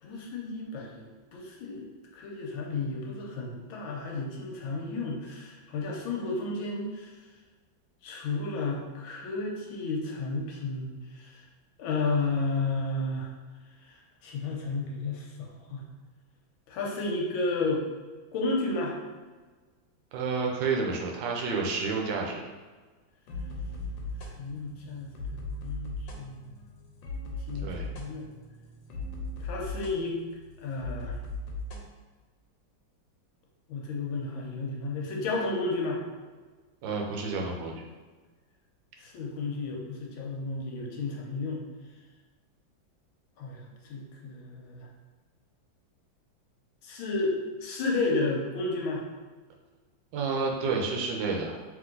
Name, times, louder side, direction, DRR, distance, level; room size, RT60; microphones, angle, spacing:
voice 1, 0.0-1.1 1.3-7.1 8.0-11.4 11.8-13.3 13.8-15.9 16.7-17.8 18.3-19.0 24.4-26.6 27.5-28.3 29.4-30.2 30.6-31.2 33.7-36.0 39.0-41.6 43.4-44.9 46.8-49.1, left 3 dB, 90° left, -1 dB, 1.6 m, -32 dB
voice 2, 20.1-22.5 27.6-27.9 36.8-37.9 50.1-51.6, right 4 dB, 75° right, 0 dB, 1.3 m, -30 dB
sound 1, 23.3-31.8, left 2 dB, 75° left, 1.3 m, -38 dB
3.7 x 3.0 x 3.8 m, 1.4 s
omnidirectional pair, 2.1 m